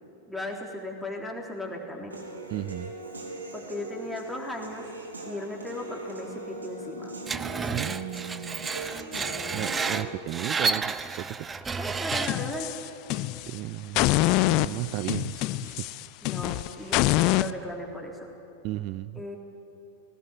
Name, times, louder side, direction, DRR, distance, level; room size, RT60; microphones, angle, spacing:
voice 1, 0.3-2.2 3.5-4.9 5.3-7.1 8.9-9.7 11.6-12.7 16.2-18.3 19.2-19.4, left 1 dB, ahead, -1 dB, 3.7 m, -37 dB
Human voice / Piano, 2.1-10.1, right 2 dB, 75° right, 3.5 m, -40 dB
voice 2, 2.5-2.9 7.7-8.7 9.5-11.5 13.3-14.1 14.6-16.0 16.8-17.0 18.6-19.2, right 17 dB, 40° right, 15 dB, 0.4 m, -35 dB
Screech, 7.3-12.5, right 4 dB, 15° right, 0.8 m, -31 dB
sound 1, 12.1-13.6 14.0-17.5, left 16 dB, 40° left, 0.5 m, -25 dB
19.5 x 18.0 x 9.9 m, 2.8 s
figure-of-eight pair, 90°, 0 cm